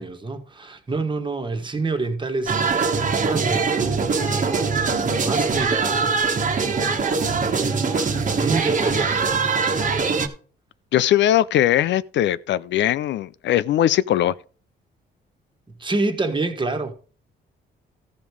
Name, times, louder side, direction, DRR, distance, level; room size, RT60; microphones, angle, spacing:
voice 1, 0.0-4.0 5.1-6.1 7.2-9.3 15.8-16.9, right 3 dB, 25° right, 1.5 m, -27 dB
sound 1, 2.5-10.3, right 4 dB, 40° right, 1.3 m, -22 dB
voice 2, 10.9-14.3, left 12 dB, 65° left, 0.4 m, -20 dB
14.0 x 5.3 x 4.7 m
cardioid pair, 90°, 20 cm